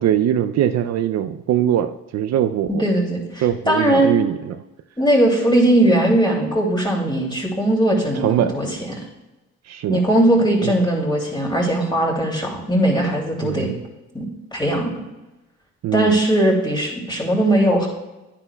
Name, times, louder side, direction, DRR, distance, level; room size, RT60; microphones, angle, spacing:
voice 1, 0.0-2.9 3.4-4.6 8.2-8.5 9.6-10.0 10.6-10.7 13.4-13.8 15.8-16.2, right 10 dB, 60° right, 9 dB, 0.5 m, -21 dB
voice 2, 2.8-4.1 5.0-8.7 9.0-9.1 9.9-13.7 14.1-14.3 14.5-14.9 15.9-17.9, right 1 dB, 15° left, -1 dB, 2.5 m, -19 dB
10.0 x 9.8 x 2.2 m, 1.0 s
cardioid pair, 90°, 30 cm